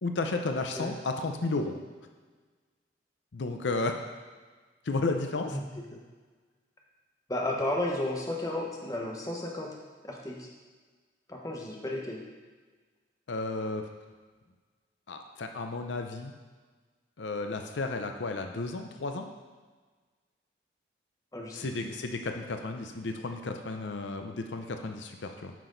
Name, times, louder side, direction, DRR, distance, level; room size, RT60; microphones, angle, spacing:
voice 1, 0.0-1.7 3.3-3.9 4.8-5.6 13.3-13.9 15.1-16.3 17.2-19.3 21.5-25.5, left 3 dB, 80° left, 5 dB, 0.6 m, -33 dB
voice 2, 7.3-9.7 10.0-10.5 11.3-12.2 21.3-21.7, left 1 dB, 20° left, -1 dB, 1.1 m, -33 dB
9.3 x 6.0 x 3.9 m, 1.4 s
head